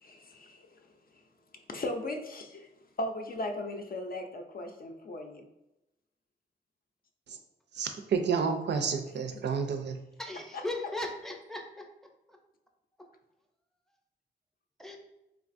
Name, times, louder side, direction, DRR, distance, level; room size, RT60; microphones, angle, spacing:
voice 1, 0.0-0.8 1.7-2.7 3.0-5.5 10.5-10.6, left 1 dB, 50° left, 4 dB, 0.4 m, -37 dB
voice 2, 7.7-10.0, right 6 dB, 65° right, 6 dB, 0.4 m, -30 dB
voice 3, 10.2-11.9 14.8-15.0, left 2 dB, ahead, 2 dB, 0.5 m, -37 dB
3.2 x 2.4 x 2.5 m, 0.91 s
cardioid pair, 55°, 19 cm